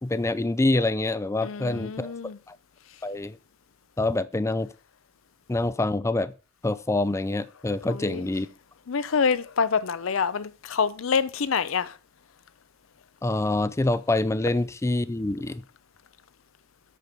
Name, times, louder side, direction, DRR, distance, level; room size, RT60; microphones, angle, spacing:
voice 1, 0.0-2.1 2.5-2.6 3.0-3.4 4.0-4.7 5.5-6.3 6.6-8.5 13.2-15.6, left 2 dB, 15° left, 0.4 m, -26 dB
voice 2, 1.4-2.4 7.8-8.2 8.9-11.9, left 6 dB, 80° left, 0.6 m, -26 dB
8.4 x 5.9 x 5.2 m
head